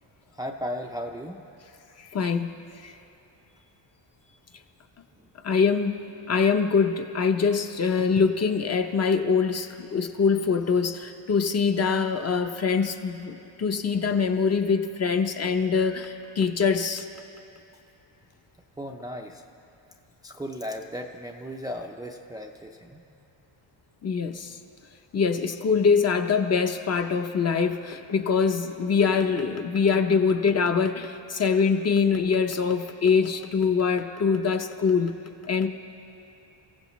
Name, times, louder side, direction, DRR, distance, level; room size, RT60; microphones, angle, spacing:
voice 1, 0.4-1.4 18.8-19.4 20.2-23.0 26.4-26.5, equal, 10° right, 1 dB, 0.4 m, -36 dB
voice 2, 2.1-2.5 5.4-6.0 6.3-17.1 24.0-24.5 25.1-35.1 35.5-35.7, left 5 dB, 35° left, 6 dB, 0.7 m, -24 dB
29.5 x 15.5 x 3.1 m, 2.7 s
wide cardioid pair, 180°, 46 cm